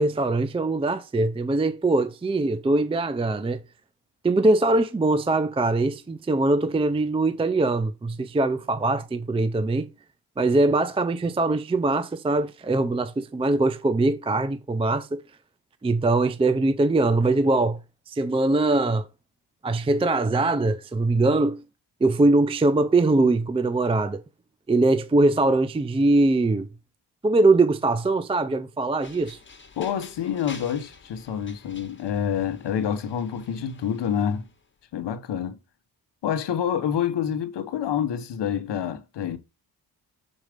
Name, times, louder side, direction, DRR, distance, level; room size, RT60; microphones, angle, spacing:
voice 1, 0.0-3.6 4.2-9.9 10.4-15.2 15.8-19.1 19.6-21.6 22.0-24.2 24.7-26.7 27.2-29.4, right 2 dB, 15° right, 0.4 m, -22 dB
sound 1, 29.0-34.7, left 4 dB, 30° left, 1.4 m, -48 dB
voice 2, 29.8-34.4 34.9-35.6 36.2-39.4, left 8 dB, 90° left, 1.1 m, -27 dB
6.5 x 4.1 x 4.9 m
cardioid pair, 100°, 41 cm